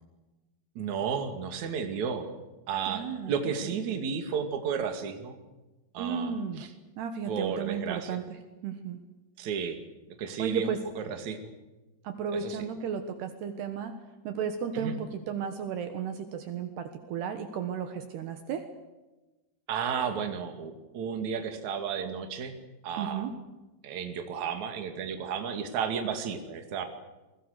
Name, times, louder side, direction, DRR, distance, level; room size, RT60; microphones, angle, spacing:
voice 1, 0.7-2.3 2.7-5.4 5.9-6.7 7.3-8.2 9.4-9.8 10.2-11.5 12.3-12.6 14.7-15.0 19.7-22.5 22.8-23.3 23.8-26.8, right 6 dB, 45° right, 6 dB, 3.2 m, -33 dB
voice 2, 2.9-3.3 3.6-3.7 6.0-6.6 7.0-8.4 8.6-9.0 10.4-10.8 12.0-13.9 14.2-18.6 23.0-23.3, right 7 dB, 70° right, 7 dB, 3.3 m, -34 dB
29.0 x 22.0 x 6.7 m, 1.1 s
omnidirectional pair, 5.2 m